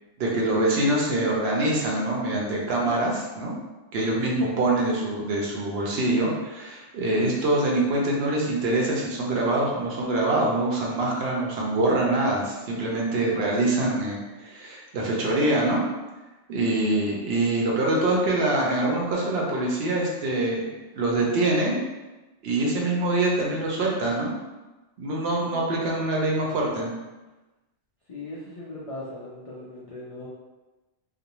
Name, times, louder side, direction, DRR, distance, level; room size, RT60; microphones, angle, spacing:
voice 1, 0.2-3.5 3.9-15.8 16.5-21.8 22.4-24.3 25.0-26.9, right 2 dB, 65° right, -3 dB, 0.8 m, -24 dB
voice 2, 28.1-30.3, left 2 dB, 70° left, -6 dB, 0.3 m, -38 dB
2.5 x 2.0 x 2.9 m, 1.1 s
omnidirectional pair, 1.2 m